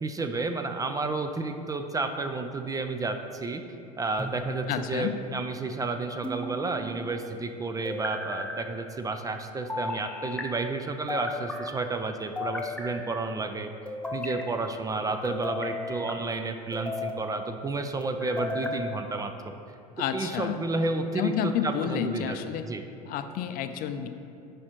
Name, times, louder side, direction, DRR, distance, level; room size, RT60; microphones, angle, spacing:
voice 1, 0.0-3.6 4.0-13.7 14.1-19.5 20.1-22.4 22.6-22.8, right 3 dB, 15° right, 7 dB, 0.4 m, -31 dB
sound 1, 4.2-4.9 6.2-7.0 7.8-8.6 9.7-10.5 11.1-11.7 12.4-13.2 13.9-14.5 15.2-16.2 16.7-17.3 18.0-18.8, left 2 dB, 5° left, 0.8 m, -35 dB
voice 2, 4.7-5.2 20.0-20.6 21.1-22.7 23.1-24.1, left 9 dB, 45° left, 9 dB, 0.5 m, -30 dB
10.0 x 5.0 x 3.0 m, 2.6 s
hypercardioid pair, 80°, 20 cm